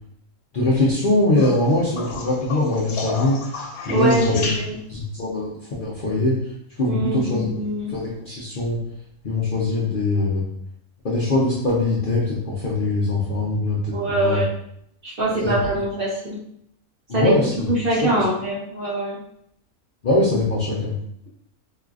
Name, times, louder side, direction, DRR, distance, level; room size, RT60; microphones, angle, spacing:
voice 1, 0.5-3.4 3.9-4.5 4.9-5.5 5.8-6.4 6.8-7.6 7.9-8.8 9.2-10.4 11.0-14.4 15.3-15.5 17.1-17.5 18.0-18.1 20.0-20.9, left 2 dB, 55° left, -6 dB, 0.6 m, -22 dB
sound 1, 1.4-5.1 7.2-7.7 9.4-9.5, left 3 dB, 80° left, 1.1 m, -32 dB
voice 2, 3.9-4.8 6.8-7.9 13.9-14.5 15.0-16.4 17.1-17.3 17.7-19.2, right 2 dB, 50° right, -6 dB, 0.8 m, -23 dB
4.7 x 2.4 x 2.4 m, 0.73 s
omnidirectional pair, 1.5 m